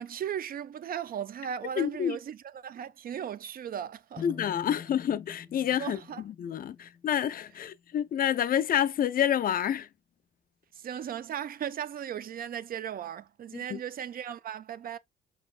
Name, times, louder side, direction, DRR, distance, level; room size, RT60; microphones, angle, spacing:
voice 1, 0.0-4.2 5.8-6.2 10.8-15.0, right 9 dB, 50° right, 0.4 m, -37 dB
voice 2, 1.8-2.2 4.2-6.0 6.3-9.9 13.7-13.8, left 10 dB, 45° left, 0.4 m, -28 dB
sound 1, 4.2-8.1, left 6 dB, 10° left, 0.7 m, -47 dB
5.1 x 3.3 x 2.4 m
cardioid pair, 90°, 20 cm